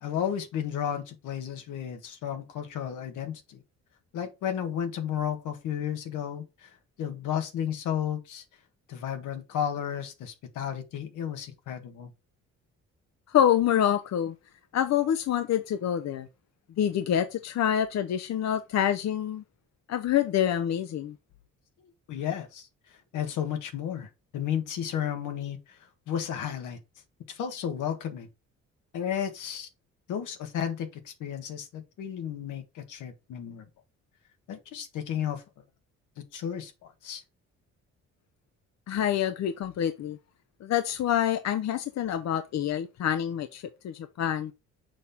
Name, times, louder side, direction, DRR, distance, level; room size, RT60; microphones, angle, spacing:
voice 1, 0.0-3.6 4.1-8.4 8.9-12.1 22.1-25.8 26.1-26.8 27.3-28.3 28.9-29.7 30.1-33.6 34.5-35.4 36.2-37.2, left 9 dB, 85° left, 1.4 m, -33 dB
voice 2, 13.3-14.3 14.7-16.3 16.8-19.4 19.9-21.1 38.9-40.2 40.6-44.5, left 10 dB, 60° left, 0.7 m, -26 dB
6.4 x 4.3 x 3.5 m
cardioid pair, 90°, 30 cm